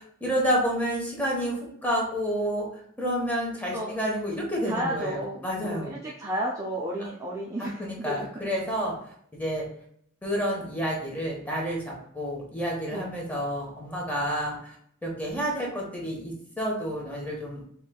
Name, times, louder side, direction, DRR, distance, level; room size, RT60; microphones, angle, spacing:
voice 1, 0.2-2.7 3.0-5.9 7.6-8.9 9.3-9.6 10.2-14.7 15.0-17.6, equal, 10° left, -3 dB, 1.1 m, -29 dB
voice 2, 4.7-8.3 12.9-13.1, right 1 dB, 15° right, -4 dB, 0.4 m, -32 dB
5.1 x 3.1 x 2.3 m, 0.66 s
head